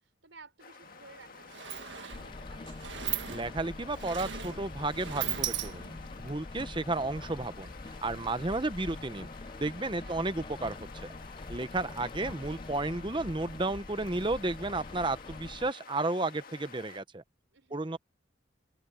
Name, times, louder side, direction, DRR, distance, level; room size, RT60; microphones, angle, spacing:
voice 1, 0.0-2.7 10.0-10.4 17.5-18.0, right 3 dB, 85° right, 4.5 m, -56 dB
sound 1, 0.6-17.0, left 5 dB, 50° left, 1.7 m, -50 dB
Sliding door, 0.8-1.0 1.2-6.2, right 10 dB, 70° right, 1.8 m, -38 dB
Rain, 2.1-15.7, left 2 dB, 25° left, 0.4 m, -45 dB
voice 2, 3.3-5.8 6.2-7.7 8.0-9.3 9.6-11.1 11.5-17.2 17.7-18.0, right 2 dB, 25° right, 0.8 m, -33 dB
open air
head